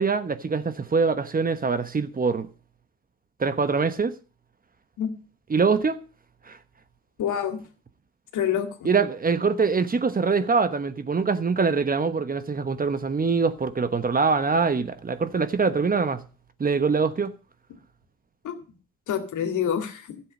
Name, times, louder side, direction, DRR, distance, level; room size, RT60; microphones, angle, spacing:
voice 1, 0.0-2.5 3.4-4.1 5.5-6.0 6.5-6.6 8.8-16.2 16.6-17.3, right 5 dB, 30° right, 1.1 m, -24 dB
voice 2, 7.2-7.6 8.3-8.9 18.4-18.6 19.1-20.2, left 8 dB, 75° left, 2.3 m, -27 dB
12.5 x 7.8 x 6.5 m
cardioid pair, 90°, 30 cm